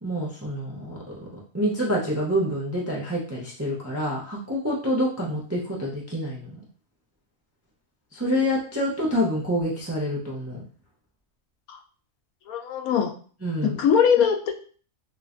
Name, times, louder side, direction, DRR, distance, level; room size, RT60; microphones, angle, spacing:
voice 1, 0.0-1.0 1.5-6.6 8.1-10.6 13.4-13.7, equal, 25° right, -4 dB, 0.3 m, -27 dB
voice 2, 12.5-13.1 13.8-14.5, left 7 dB, 85° left, 3 dB, 1.1 m, -21 dB
3.2 x 3.1 x 2.5 m, 0.43 s
omnidirectional pair, 1.5 m